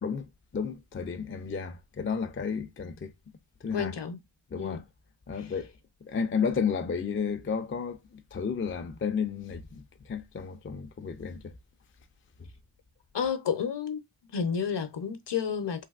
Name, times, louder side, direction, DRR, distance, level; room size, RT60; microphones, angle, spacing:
voice 1, 0.0-3.1 3.6-3.9 4.5-4.8 5.3-5.7 6.0-11.6, left 6 dB, 30° left, 0.3 m, -32 dB
voice 2, 3.7-4.2 4.6-4.8 13.1-14.0 14.3-15.9, left 7 dB, 60° left, 0.7 m, -30 dB
3.4 x 2.6 x 2.3 m
wide cardioid pair, 80°, 49 cm